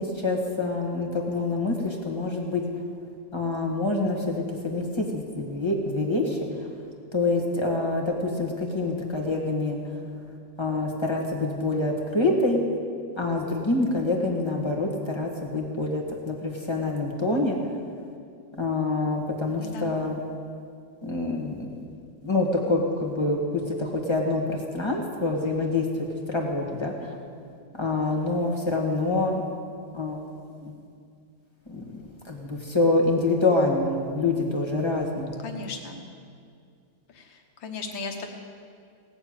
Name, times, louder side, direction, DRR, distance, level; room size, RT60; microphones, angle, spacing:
voice 1, 0.0-2.6 3.3-6.4 7.1-9.8 10.6-12.6 13.2-17.6 18.6-20.2 21.0-21.8 22.2-27.1 27.7-29.4 29.9-30.2 30.6-30.7 31.7-31.8 32.3-35.4, left 2 dB, 15° left, -1 dB, 1.6 m, -26 dB
voice 2, 19.6-19.9 35.4-36.0 37.1-38.3, left 4 dB, 85° left, 4 dB, 2.1 m, -36 dB
17.5 x 6.9 x 8.9 m, 2.3 s
omnidirectional pair, 2.0 m